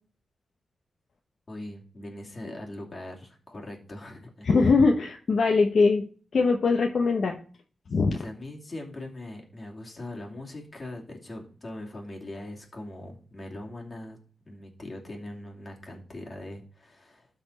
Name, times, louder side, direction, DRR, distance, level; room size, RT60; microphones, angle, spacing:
voice 1, 1.5-4.5 8.1-14.2 14.4-17.3, left 1 dB, 35° left, 0 dB, 2.6 m, -41 dB
voice 2, 4.4-6.0 6.3-7.4 7.9-8.2, left 4 dB, 60° left, 3 dB, 0.9 m, -21 dB
12.5 x 4.3 x 4.1 m, 0.41 s
wide cardioid pair, 95°, 0 cm